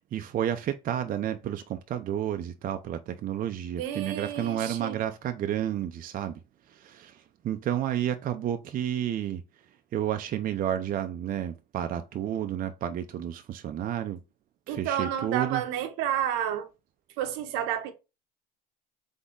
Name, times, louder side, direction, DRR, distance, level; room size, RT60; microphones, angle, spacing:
voice 1, 0.1-6.4 6.7-9.4 9.9-14.2 14.7-15.6, right 10 dB, 40° right, 0.6 m, -31 dB
voice 2, 3.8-5.0 14.7-16.7 17.2-17.9, right 10 dB, 70° right, 0.9 m, -30 dB
3.9 x 3.5 x 3.6 m
hypercardioid pair, 80°, 21 cm